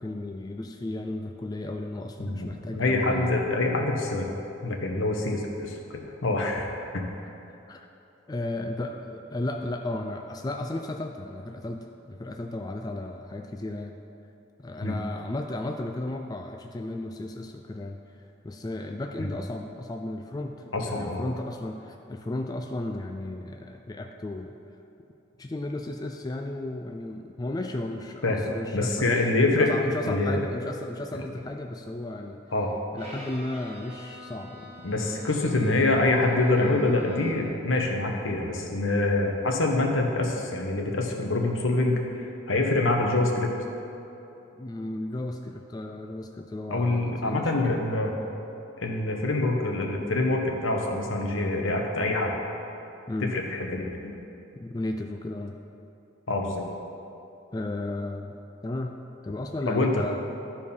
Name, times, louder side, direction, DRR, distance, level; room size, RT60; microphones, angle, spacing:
voice 1, 0.0-3.3 7.5-7.9 8.3-14.0 14.6-24.6 25.4-32.4 32.9-34.8 35.0-35.2 44.6-47.8 53.1-53.4 54.6-55.6 57.5-58.4 58.6-60.2, left 2 dB, 20° left, 4 dB, 0.3 m, -34 dB
voice 2, 2.2-4.3 4.6-5.8 6.2-7.0 14.8-15.0 19.2-19.3 20.7-21.2 28.2-28.4 28.7-29.7 30.1-30.5 32.5-32.7 34.8-43.5 46.7-48.1 48.8-52.3 53.2-54.0 56.3-56.6 59.7-60.0, left 2 dB, 80° left, 1 dB, 1.2 m, -25 dB
Bowed string instrument, 33.0-37.6, left 1 dB, 30° right, 1.6 m, -46 dB
13.0 x 4.7 x 5.5 m, 2.9 s
head